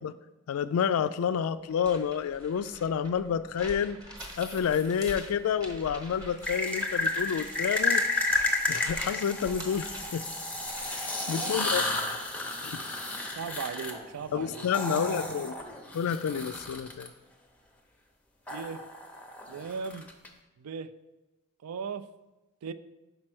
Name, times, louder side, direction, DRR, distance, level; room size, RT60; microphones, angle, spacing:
voice 1, 0.5-4.0 4.4-8.0 8.7-10.2 10.9-11.8 12.6-12.8 14.3-15.5 15.9-17.1, left 7 dB, 70° left, 15 dB, 0.3 m, -29 dB
sound 1, 1.7-11.2, right 1 dB, 15° right, 0.8 m, -46 dB
sound 2, 4.2-5.1 6.4-17.1 18.5-20.3, left 2 dB, 5° left, 0.5 m, -32 dB
voice 2, 11.2-12.1 13.4-15.8 18.5-18.8 19.5-20.1 20.6-20.9 21.6-22.1 22.6-22.7, right 6 dB, 80° right, 14 dB, 0.4 m, -38 dB
5.3 x 4.4 x 6.0 m, 1.1 s
head